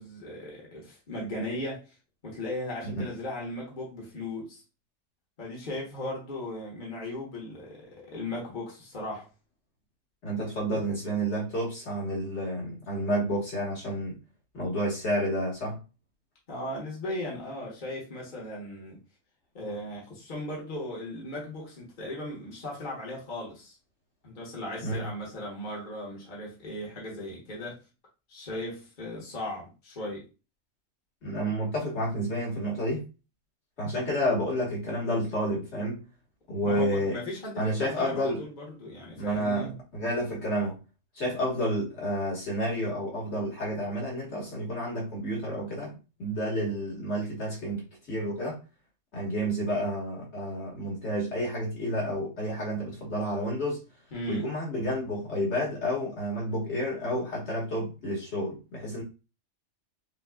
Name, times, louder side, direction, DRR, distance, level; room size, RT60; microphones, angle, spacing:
voice 1, 0.0-1.9 2.2-4.6 5.4-9.3 16.5-19.0 19.5-23.7 24.2-27.8 28.3-30.3 36.6-39.8 54.1-54.5, left 1 dB, 40° left, 1.4 m, -37 dB
voice 2, 10.2-14.2 14.5-15.8 24.8-25.1 31.2-33.1 33.8-36.0 36.5-37.2 37.6-38.4 39.2-40.8 41.1-45.9 46.2-48.6 49.1-53.8 54.3-59.0, equal, 55° left, 1.8 m, -30 dB
5.7 x 2.4 x 2.4 m
omnidirectional pair, 1.4 m